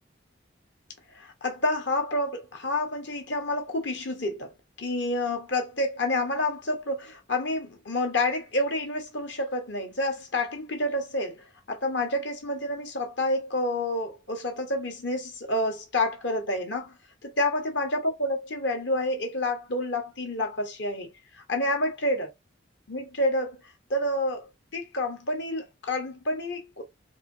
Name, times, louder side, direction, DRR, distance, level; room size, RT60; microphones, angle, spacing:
voice 1, 1.1-4.5 4.8-16.9 17.2-21.1 21.5-22.3 22.9-23.6 23.9-26.8, left 1 dB, 65° left, 1.2 m, -29 dB
4.2 x 2.6 x 2.7 m
head